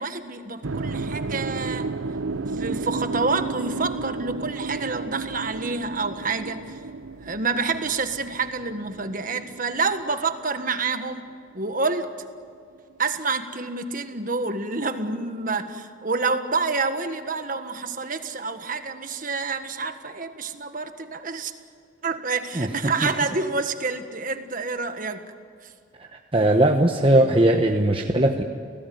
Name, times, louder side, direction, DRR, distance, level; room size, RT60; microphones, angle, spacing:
voice 1, 0.0-1.9 2.4-6.8 7.2-11.3 11.5-12.1 13.0-21.5 22.0-25.2, right 4 dB, 45° right, 8 dB, 1.6 m, -28 dB
sound 1, 0.6-10.8, right 3 dB, 80° right, 0.7 m, -32 dB
voice 2, 22.6-22.9 26.3-28.4, right 1 dB, 25° right, 3 dB, 1.0 m, -19 dB
30.0 x 17.5 x 9.4 m, 2.3 s
head